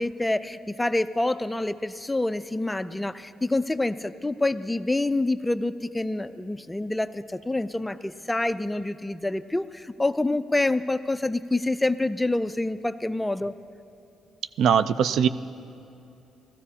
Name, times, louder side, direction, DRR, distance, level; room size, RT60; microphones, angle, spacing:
voice 1, 0.0-13.5, left 2 dB, 10° left, 12 dB, 0.3 m, -27 dB
voice 2, 14.6-15.3, right 7 dB, 75° right, 13 dB, 0.3 m, -20 dB
17.0 x 14.5 x 2.8 m, 2.8 s
cardioid pair, 90°, 0 cm